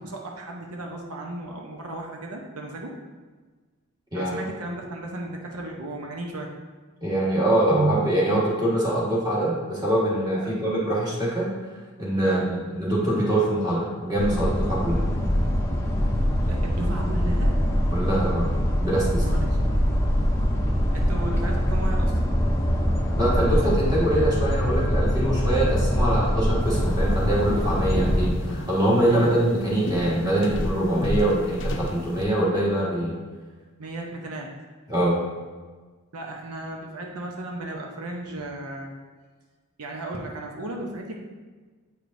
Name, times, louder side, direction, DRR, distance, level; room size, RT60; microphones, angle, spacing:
voice 1, 0.0-2.9 4.1-6.5 10.4-10.5 12.2-12.4 16.5-17.5 19.2-19.8 20.9-22.2 29.1-29.4 33.8-34.5 36.1-39.0 39.8-41.2, right 1 dB, 85° right, 1 dB, 0.8 m, -35 dB
voice 2, 7.0-15.0 17.9-18.5 18.8-19.2 23.1-33.2 34.9-35.2, right 1 dB, 15° right, -6 dB, 1.5 m, -24 dB
sound 1, 14.2-28.3, equal, 15° left, 0.6 m, -23 dB
sound 2, 26.6-32.2, left 1 dB, 55° left, 0.6 m, -33 dB
8.3 x 5.0 x 2.6 m, 1.4 s
head